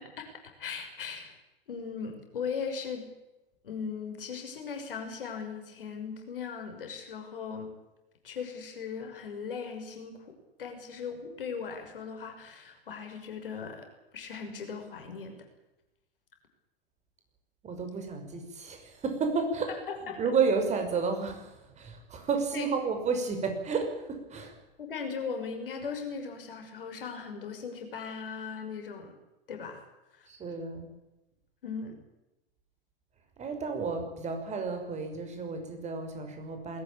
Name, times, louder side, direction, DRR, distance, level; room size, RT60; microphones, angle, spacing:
voice 1, 0.6-1.4 1.7-3.1 3.6-7.7 8.2-10.3 10.6-13.9 14.1-15.4 20.1-20.2 22.5-22.6 24.8-29.1 29.5-29.8 30.1-30.3 31.6-31.9, left 6 dB, 65° left, 5 dB, 6.1 m, -38 dB
voice 2, 17.6-19.7 20.0-24.6 30.3-30.9 33.4-36.8, right 5 dB, 25° right, 5 dB, 5.5 m, -31 dB
21.0 x 18.0 x 8.8 m, 0.97 s
figure-of-eight pair, 95°, 29 cm